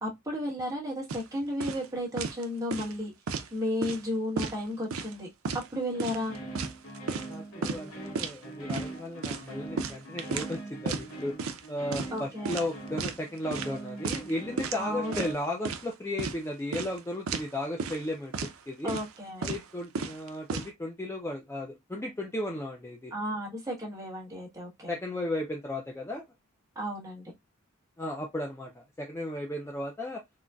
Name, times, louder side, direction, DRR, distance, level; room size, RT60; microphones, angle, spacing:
voice 1, 0.0-3.1 3.5-6.3 12.1-12.7 14.7-15.2 18.8-19.5 23.1-24.9 26.7-27.3, left 1 dB, 15° right, 1.1 m, -33 dB
sound 1, 1.1-1.3 1.6-1.9 2.2-2.4 2.7-3.5 3.8-4.1 4.4-5.1 5.5-5.7 6.0-7.3 7.6-7.8 8.2-8.4 8.7-8.9 9.2-10.6 10.9-11.1 11.4-11.7 11.9-12.2 12.5-13.2 13.5-13.7 14.0-14.3 14.6-14.8 15.1-15.9 16.2-16.4 16.7-17.0 17.3-17.5 17.8-18.1 18.3-18.5 18.9-19.2 19.4-19.7 20.0-20.7, right 4 dB, 75° right, 0.5 m, -33 dB
sound 2, 5.9-15.3, right 2 dB, 90° left, 1.2 m, -42 dB
voice 2, 7.2-11.3 11.7-18.3 18.7-19.0 19.4-23.1 24.9-26.3 28.0-30.2, left 1 dB, 10° left, 0.4 m, -35 dB
3.8 x 2.1 x 2.2 m
head